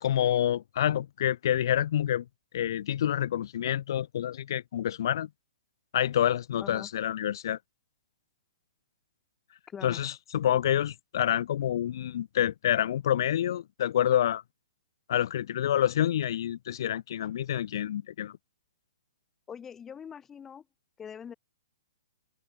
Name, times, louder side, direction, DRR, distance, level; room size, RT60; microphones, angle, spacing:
voice 1, 0.0-2.2 2.5-5.3 5.9-7.6 9.8-14.4 15.1-18.3, left 11 dB, 55° left, 2.6 m, -27 dB
voice 2, 9.7-10.0 19.5-20.6 21.0-21.3, left 7 dB, 10° left, 5.6 m, -43 dB
open air
hypercardioid pair, 160°, 3 cm